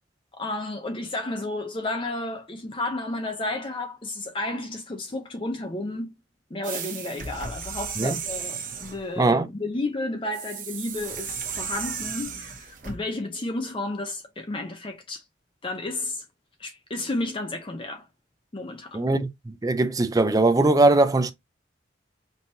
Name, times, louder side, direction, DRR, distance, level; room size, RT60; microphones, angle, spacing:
voice 1, 0.3-6.1 6.5-15.2 15.6-16.2 16.6-18.1 18.5-19.1, left 2 dB, 25° left, 0.6 m, -32 dB
sound 1, 6.6-9.0 10.3-13.0, right 6 dB, 45° right, 0.9 m, -34 dB
voice 2, 9.2-9.5 18.9-21.3, right 2 dB, 20° right, 0.4 m, -21 dB
5.3 x 2.9 x 2.6 m
head